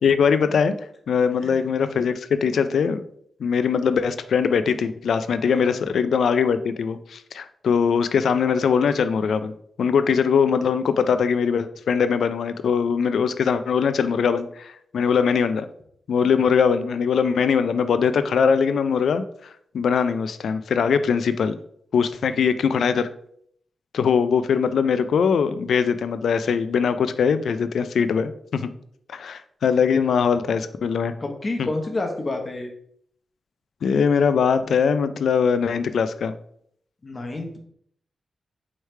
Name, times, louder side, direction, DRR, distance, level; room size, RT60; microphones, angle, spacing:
voice 1, 0.0-0.7 1.1-3.0 3.4-9.5 9.8-15.7 16.1-19.2 19.7-21.6 21.9-23.1 23.9-28.7 29.1-31.1 31.6-31.7 33.8-36.3, left 6 dB, 85° left, 11 dB, 0.3 m, -21 dB
voice 2, 5.4-5.9 31.2-32.7 37.0-37.6, left 2 dB, 35° left, 3 dB, 0.9 m, -29 dB
4.8 x 3.2 x 3.2 m, 0.66 s
wide cardioid pair, 110°, 0 cm